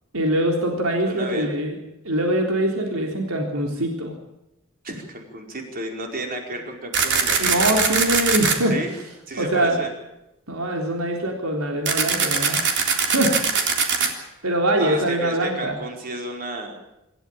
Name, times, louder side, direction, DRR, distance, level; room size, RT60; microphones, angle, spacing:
voice 1, 0.1-1.8 2.0-4.1 7.4-8.7 9.4-9.8 10.5-13.4 14.0-15.8, right 1 dB, 90° right, 2 dB, 3.7 m, -23 dB
voice 2, 1.1-1.5 4.8-7.7 8.7-8.9 9.3-9.9 13.3-13.4 14.8-16.8, right 1 dB, 45° right, 2 dB, 4.9 m, -32 dB
sound 1, 6.9-8.6 11.9-14.1, right 6 dB, 60° right, 3.5 m, -21 dB
26.5 x 14.0 x 9.1 m, 0.91 s
head